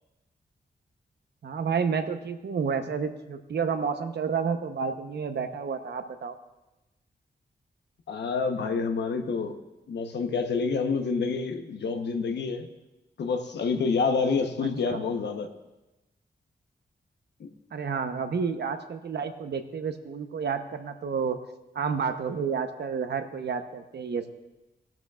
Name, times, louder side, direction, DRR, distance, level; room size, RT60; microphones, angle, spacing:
voice 1, 1.4-6.3 14.9-15.0 17.7-21.4 21.7-24.3, right 6 dB, 75° right, 8 dB, 0.9 m, -30 dB
voice 2, 8.1-9.6 9.9-12.7 13.2-15.5 17.4-17.5, left 4 dB, 90° left, 6 dB, 1.0 m, -28 dB
18.0 x 12.0 x 2.4 m, 1.0 s
wide cardioid pair, 95°, 17 cm